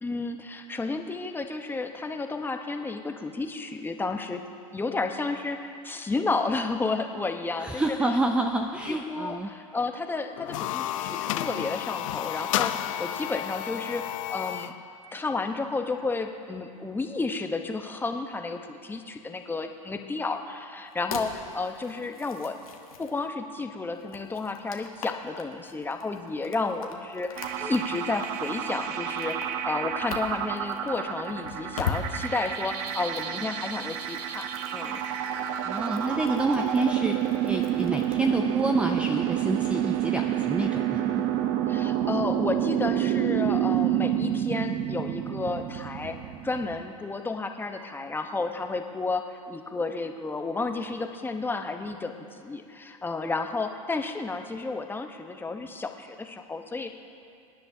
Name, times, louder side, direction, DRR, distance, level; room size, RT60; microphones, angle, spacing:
voice 1, 0.0-4.5 4.7-8.0 8.9-14.7 15.1-22.6 23.0-29.4 29.6-35.0 41.7-46.2 46.4-56.9, left 3 dB, 10° left, 5 dB, 0.9 m, -32 dB
voice 2, 7.6-9.5 35.6-37.2 37.5-41.2, right 2 dB, 5° right, 4 dB, 0.6 m, -28 dB
sound 1, 10.4-14.8, left 12 dB, 65° left, 0.6 m, -31 dB
sound 2, 20.9-23.3 23.9-38.4, left 6 dB, 90° left, 1.3 m, -41 dB
sound 3, 27.4-46.8, right 11 dB, 50° right, 0.9 m, -29 dB
25.5 x 10.0 x 2.7 m, 2.5 s
hypercardioid pair, 100°, 18 cm